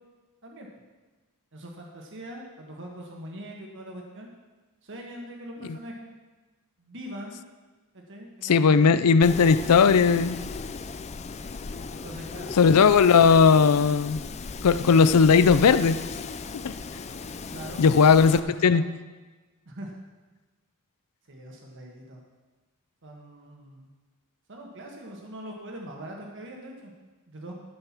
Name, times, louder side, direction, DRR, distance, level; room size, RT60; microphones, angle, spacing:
voice 1, 1.5-4.3 4.8-6.1 6.8-7.4 7.9-9.0 11.9-12.6 17.5-18.9 19.6-19.9 21.3-22.2 23.0-23.9 24.5-26.9 27.3-27.5, right 1 dB, 55° right, 0 dB, 1.5 m, -42 dB
voice 2, 8.4-10.4 12.6-14.2 14.6-16.0 16.6-16.7 17.8-18.8, left 5 dB, 85° left, 13 dB, 0.5 m, -18 dB
Wind, 9.2-18.4, left 4 dB, 30° left, 0.4 m, -36 dB
12.5 x 5.6 x 5.9 m, 1.2 s
head